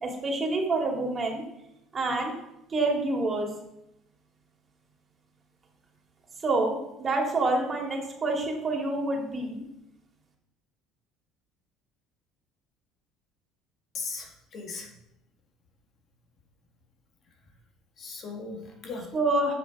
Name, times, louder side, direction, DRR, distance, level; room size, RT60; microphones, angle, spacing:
voice 1, 0.0-1.4 1.9-2.3 2.7-3.5 6.4-9.6 19.1-19.5, right 2 dB, 30° right, 0 dB, 2.6 m, -27 dB
voice 2, 13.9-14.9 18.0-19.1, left 4 dB, 50° left, 2 dB, 1.8 m, -38 dB
8.1 x 5.9 x 4.9 m, 0.86 s
supercardioid pair, 95°, 0 cm